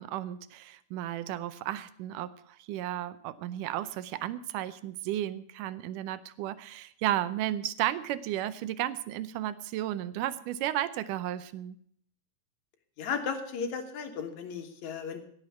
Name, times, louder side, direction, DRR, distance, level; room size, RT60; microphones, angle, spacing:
voice 1, 0.0-11.8, right 13 dB, 75° right, 14 dB, 2.0 m, -33 dB
voice 2, 13.0-15.2, left 6 dB, 60° left, 5 dB, 2.5 m, -35 dB
16.5 x 6.7 x 8.3 m, 0.64 s
omnidirectional pair, 4.2 m